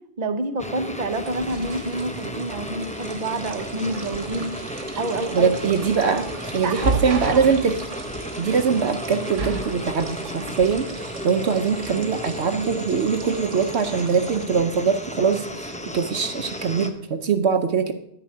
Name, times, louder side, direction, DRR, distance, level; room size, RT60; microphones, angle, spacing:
voice 1, 0.2-4.5 5.0-5.6 6.1-6.3 6.6-7.4, right 2 dB, 40° right, 7 dB, 1.0 m, -28 dB
sound 1, 0.6-16.9, equal, 5° left, 0.8 m, -34 dB
sound 2, 0.9-14.5, right 3 dB, 85° right, 1.6 m, -35 dB
voice 2, 5.3-6.2 6.5-7.8 8.4-17.9, right 6 dB, 65° right, 7 dB, 1.0 m, -22 dB
10.5 x 6.0 x 8.6 m, 0.77 s
omnidirectional pair, 1.2 m